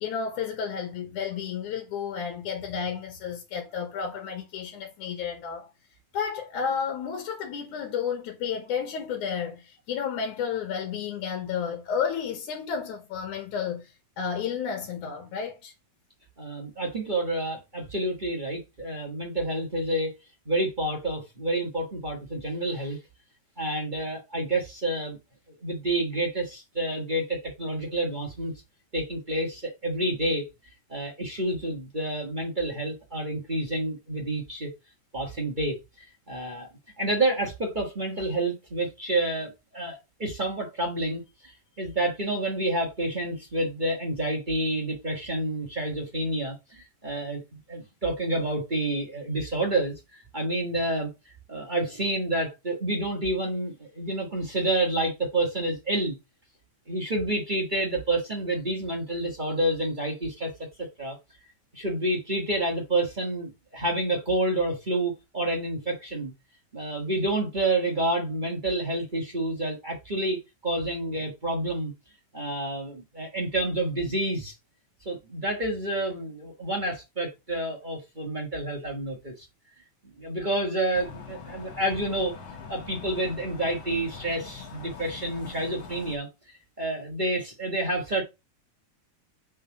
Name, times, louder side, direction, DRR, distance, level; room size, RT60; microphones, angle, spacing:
voice 1, 0.0-5.7 6.1-15.7, left 7 dB, 75° left, 2.6 m, -32 dB
voice 2, 16.4-20.1 20.4-23.0 23.6-25.2 25.6-28.5 28.9-30.5 30.9-34.7 35.1-35.8 36.3-36.7 37.0-47.4 47.7-51.1 51.5-56.1 56.9-60.5 61.0-61.2 61.7-66.3 66.7-71.9 72.3-74.5 75.0-79.5 80.2-82.3 82.7-86.3 86.8-88.2, right 1 dB, 40° right, 0.6 m, -29 dB
sound 1, 80.9-86.2, left 5 dB, 45° left, 1.9 m, -43 dB
5.4 x 3.7 x 5.9 m
omnidirectional pair, 3.6 m